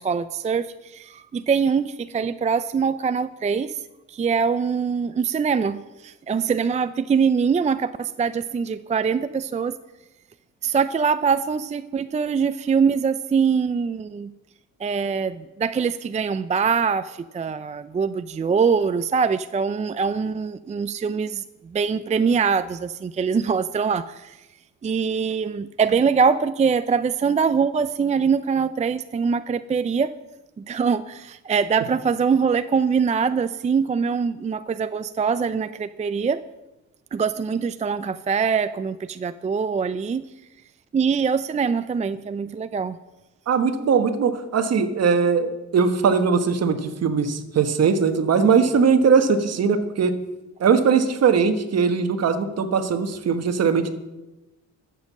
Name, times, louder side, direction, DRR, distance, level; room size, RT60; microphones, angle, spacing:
voice 1, 0.0-3.8 4.1-9.8 10.6-14.3 14.8-21.4 21.7-24.4 24.8-30.1 30.6-36.4 37.1-40.3 40.9-43.0, right 6 dB, 25° right, 13 dB, 0.4 m, -23 dB
voice 2, 43.5-50.1 50.6-53.9, right 5 dB, 55° right, 8 dB, 1.4 m, -20 dB
12.5 x 7.5 x 7.4 m, 1.0 s
cardioid pair, 90°, 30 cm